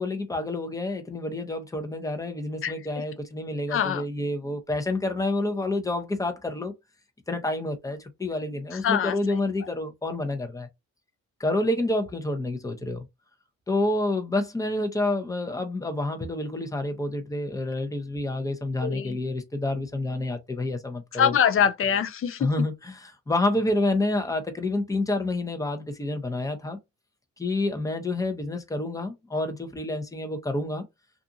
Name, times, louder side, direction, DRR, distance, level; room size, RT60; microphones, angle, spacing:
voice 1, 0.0-6.7 7.3-10.7 11.4-13.1 13.7-21.3 22.4-26.8 27.4-30.8, left 2 dB, 10° left, 0.7 m, -28 dB
voice 2, 2.6-3.0 3.7-4.0 8.7-9.1 18.8-19.2 21.1-22.5, left 8 dB, 45° left, 0.5 m, -24 dB
2.5 x 2.5 x 2.6 m
cardioid pair, 90°, 30 cm